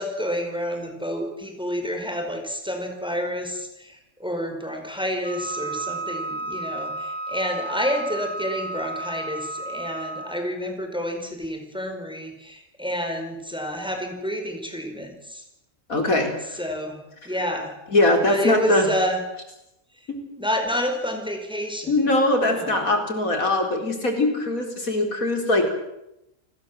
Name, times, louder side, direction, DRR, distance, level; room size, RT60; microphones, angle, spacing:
voice 1, 0.0-15.4 16.5-17.0 17.2-17.8 18.3-19.2 20.4-22.1 22.4-22.8, equal, 5° right, 4 dB, 5.0 m, -29 dB
Wind instrument woodwind instrument, 5.2-10.4, right 2 dB, 60° right, 2.7 m, -32 dB
voice 2, 15.9-16.6 17.9-18.9 20.1-20.2 21.9-25.8, left 2 dB, 85° left, 4 dB, 4.7 m, -22 dB
29.5 x 20.5 x 7.7 m, 0.87 s
omnidirectional pair, 1.4 m